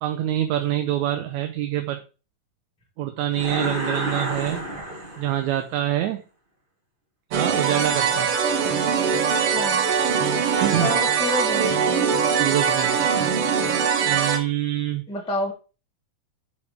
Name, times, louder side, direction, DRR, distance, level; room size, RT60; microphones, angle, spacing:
voice 1, 0.0-2.0 3.0-4.7 5.2-6.2 7.3-8.4 10.6-11.0 12.2-13.1 14.1-15.1, right 12 dB, 80° right, 6 dB, 2.1 m, -25 dB
sound 1, 3.3-5.6, right 1 dB, 20° right, 1.5 m, -30 dB
sound 2, 7.3-14.4, right 6 dB, 60° right, 1.6 m, -22 dB
voice 2, 9.5-9.9 10.8-12.1 15.1-15.5, left 2 dB, 5° left, 0 dB, 1.0 m, -29 dB
6.5 x 5.7 x 4.9 m, 0.33 s
omnidirectional pair, 3.3 m